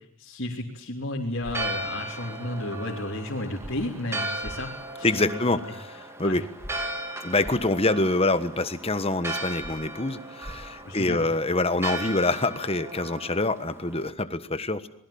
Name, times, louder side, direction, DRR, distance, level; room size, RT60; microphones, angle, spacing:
voice 1, 0.2-5.4 6.2-6.4 10.8-11.3, left 1 dB, 55° left, -4 dB, 3.5 m, -33 dB
sound 1, 1.4-1.6 3.6-3.7 4.4-4.6 6.6-6.7 7.4-7.6 9.6-9.7 10.4-10.6, equal, 5° left, 6.5 m, -39 dB
Church bell, 1.4-14.1, right 1 dB, 10° right, 2.3 m, -36 dB
voice 2, 5.0-6.4 7.2-14.9, left 2 dB, 25° left, 11 dB, 1.3 m, -26 dB
26.0 x 21.0 x 8.7 m, 0.70 s
head